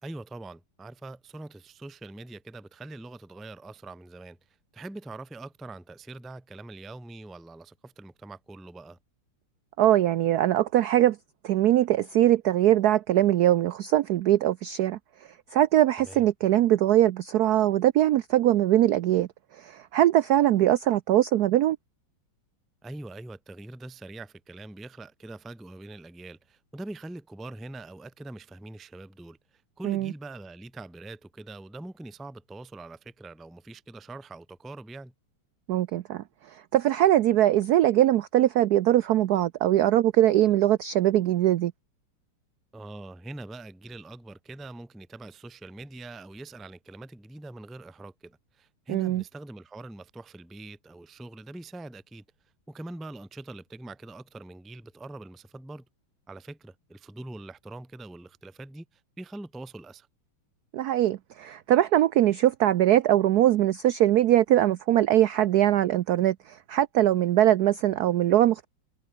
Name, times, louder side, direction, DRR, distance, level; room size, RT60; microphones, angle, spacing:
voice 1, 0.0-4.4 4.7-9.0 16.0-16.3 22.8-35.1 42.7-52.2 52.7-55.8 56.3-60.1, right 2 dB, ahead, 0.5 m, -43 dB
voice 2, 9.8-11.2 11.4-15.0 15.5-19.3 19.6-21.8 29.8-30.1 35.7-36.2 36.7-41.7 48.9-49.2 60.7-68.6, right 13 dB, 80° right, 0.8 m, -22 dB
omnidirectional pair, 2.3 m